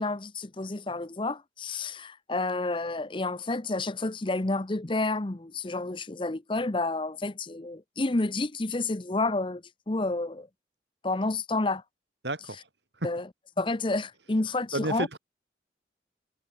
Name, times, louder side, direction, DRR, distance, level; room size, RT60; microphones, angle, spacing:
voice 1, 0.0-9.6 9.9-10.5 11.0-11.8 13.0-13.2 13.6-15.1, left 2 dB, 30° left, 0.8 m, -30 dB
voice 2, 12.2-12.7 13.0-13.1 14.7-15.2, right 1 dB, 75° right, 7.1 m, -31 dB
head